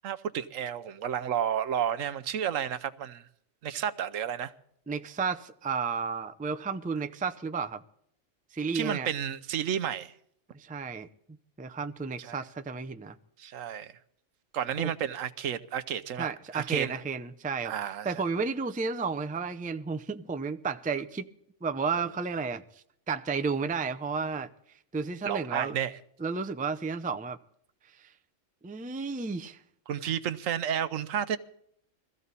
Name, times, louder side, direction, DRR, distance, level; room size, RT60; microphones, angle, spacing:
voice 1, 0.0-3.3 3.6-4.5 8.7-10.1 12.2-12.4 13.4-13.9 14.5-17.0 17.6-18.2 25.2-25.9 29.9-31.4, right 9 dB, 85° right, 1.2 m, -31 dB
voice 2, 4.9-7.8 8.5-9.1 10.5-11.1 11.6-13.2 14.8-14.9 16.2-17.7 18.0-21.3 21.6-22.6 23.1-24.5 24.9-25.8 26.2-27.4 28.0-28.1 28.6-29.6, right 5 dB, 10° right, 0.3 m, -32 dB
22.5 x 15.0 x 4.1 m
omnidirectional pair, 1.3 m